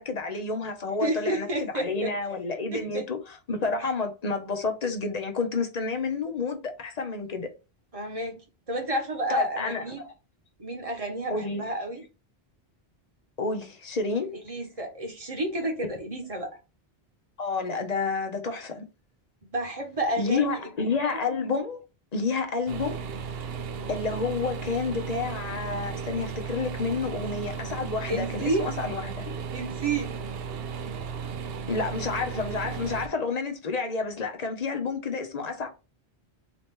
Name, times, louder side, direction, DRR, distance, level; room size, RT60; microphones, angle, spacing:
voice 1, 0.0-7.5 9.3-10.1 11.3-11.6 13.4-14.3 17.4-18.9 20.2-21.8 22.1-23.0 23.9-29.4 31.7-35.7, left 4 dB, 45° left, 0.8 m, -30 dB
voice 2, 1.0-2.1 2.7-3.0 7.9-8.4 8.7-10.1 10.6-12.0 14.4-16.5 19.5-20.6 21.0-21.2 28.1-28.6 29.5-30.2, right 1 dB, 35° right, 1.2 m, -30 dB
sound 1, 22.7-33.1, right 6 dB, 70° right, 0.8 m, -35 dB
4.0 x 2.8 x 3.6 m
omnidirectional pair, 1.1 m